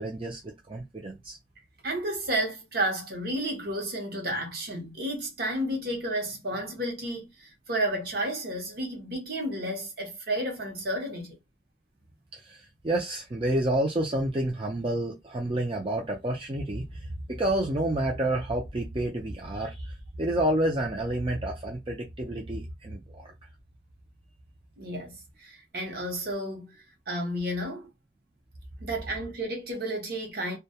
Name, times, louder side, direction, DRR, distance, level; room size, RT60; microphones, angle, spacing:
voice 1, 0.0-1.4 12.4-23.3, right 1 dB, 30° right, 0.5 m, -29 dB
voice 2, 1.8-11.4 24.8-26.7 27.1-27.9 28.8-30.6, right 1 dB, 60° right, 0.9 m, -32 dB
2.2 x 2.1 x 2.7 m
head